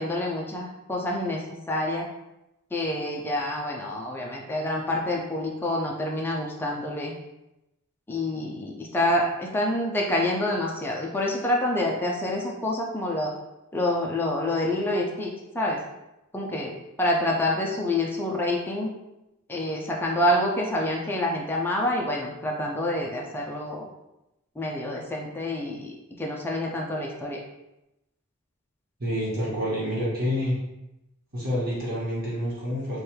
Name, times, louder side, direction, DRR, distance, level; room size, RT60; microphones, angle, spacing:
voice 1, 0.0-2.1 2.7-7.1 8.1-13.3 13.7-15.8 16.3-16.7 17.0-18.9 19.5-23.9 24.6-27.4, left 1 dB, 10° left, -2 dB, 0.4 m, -27 dB
voice 2, 29.0-30.6 31.3-33.0, equal, 45° right, -7 dB, 1.1 m, -28 dB
3.3 x 2.2 x 4.3 m, 0.92 s
head